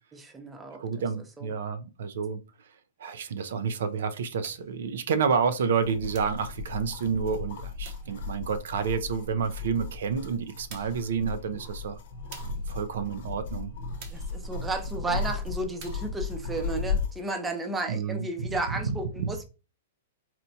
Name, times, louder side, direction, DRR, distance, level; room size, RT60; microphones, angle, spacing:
voice 1, 0.1-0.8 1.4-1.5 14.1-19.4, right 2 dB, 10° right, 0.5 m, -33 dB
voice 2, 0.8-2.4 3.0-12.0 12.7-13.7 15.1-15.2 17.9-19.3, right 6 dB, 75° right, 0.4 m, -29 dB
sound 1, 4.4-4.7 6.1-6.4 7.8-8.1 9.9-10.0 10.7-11.1 12.3-12.7 14.0-14.3 15.8-16.1, right 5 dB, 45° right, 0.8 m, -48 dB
sound 2, 5.8-17.2, left 4 dB, 55° left, 0.8 m, -35 dB
4.2 x 2.2 x 2.6 m
hypercardioid pair, 155°, 0 cm